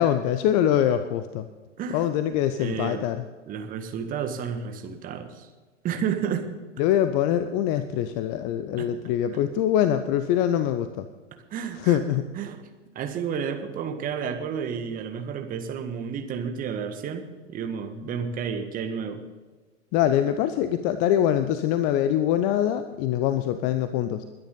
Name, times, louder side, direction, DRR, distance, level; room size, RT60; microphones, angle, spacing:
voice 1, 0.0-1.5 1.9-3.2 6.8-11.1 11.8-12.3 19.9-24.2, left 10 dB, 20° left, 11 dB, 0.5 m, -24 dB
voice 2, 2.6-3.1 3.5-5.5 5.8-6.5 8.8-8.9 9.3-9.4 11.5-12.6 12.9-19.2, right 7 dB, 20° right, 6 dB, 1.7 m, -31 dB
21.5 x 10.5 x 3.9 m, 1.3 s
figure-of-eight pair, 100°, 37 cm